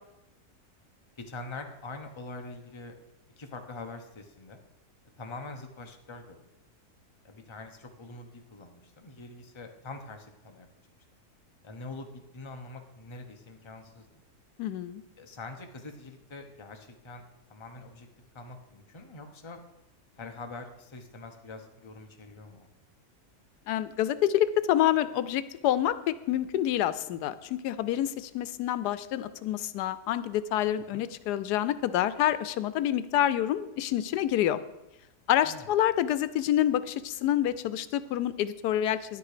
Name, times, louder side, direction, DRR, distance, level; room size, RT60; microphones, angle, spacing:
voice 1, 1.2-2.9 3.4-4.6 5.2-6.4 7.2-10.7 11.6-14.2 15.2-17.2 17.5-18.1 18.3-19.6 20.1-22.7 30.9-31.0 35.4-35.8, left 3 dB, 20° left, 4 dB, 0.9 m, -44 dB
voice 2, 14.6-15.0 23.7-34.6 35.3-39.2, left 12 dB, 90° left, 14 dB, 1.2 m, -27 dB
11.0 x 9.6 x 5.0 m, 0.94 s
omnidirectional pair, 1.7 m